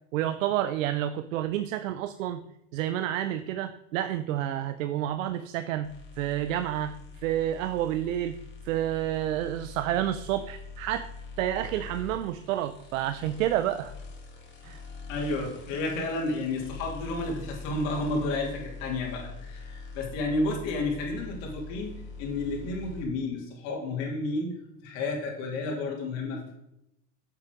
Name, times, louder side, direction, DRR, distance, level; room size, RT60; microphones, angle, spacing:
voice 1, 0.1-2.4 2.7-5.9 6.2-6.9 7.2-8.4 8.6-11.1 11.4-13.9 14.6-14.8, right 12 dB, 85° right, 11 dB, 0.6 m, -29 dB
sound 1, 5.8-23.0, left 4 dB, 30° left, 4.0 m, -44 dB
voice 2, 15.1-24.5 24.8-26.4, left 2 dB, 65° left, -1 dB, 3.1 m, -31 dB
7.5 x 7.4 x 5.2 m, 0.83 s
supercardioid pair, 105°, 39 cm